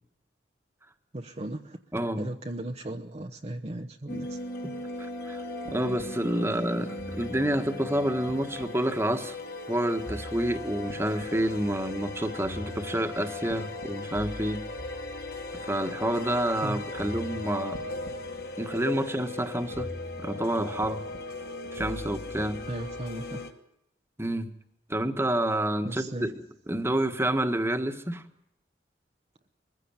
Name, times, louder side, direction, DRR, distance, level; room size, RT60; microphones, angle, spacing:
voice 1, 1.1-1.8 2.2-4.4 16.6-16.8 22.7-23.4 25.8-26.3, right 1 dB, 35° right, 4 dB, 1.0 m, -36 dB
voice 2, 1.9-2.3 4.6-4.7 5.3-9.4 9.7-14.6 15.5-17.8 18.6-19.9 20.2-21.0 21.7-22.6 24.2-24.5 24.9-28.2, right 1 dB, 15° right, 7 dB, 1.6 m, -29 dB
sound 1, 4.1-23.5, left 2 dB, 60° left, 2.5 m, -37 dB
22.0 x 15.5 x 8.9 m, 0.82 s
head